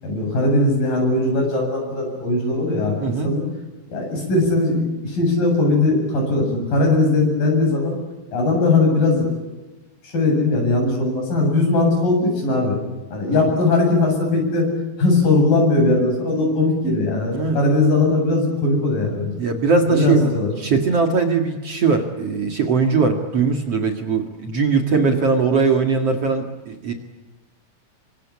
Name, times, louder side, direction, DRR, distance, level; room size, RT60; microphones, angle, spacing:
voice 1, 0.0-3.4 3.9-8.0 8.3-9.3 10.0-12.8 13.1-14.7 15.0-19.3 19.9-20.5, left 2 dB, 65° left, 2 dB, 9.6 m, -19 dB
voice 2, 3.0-3.3 13.3-13.4 17.3-17.6 19.4-20.3 20.6-26.9, right 4 dB, 45° right, 4 dB, 2.7 m, -20 dB
28.5 x 24.5 x 8.5 m, 1.1 s
omnidirectional pair, 4.3 m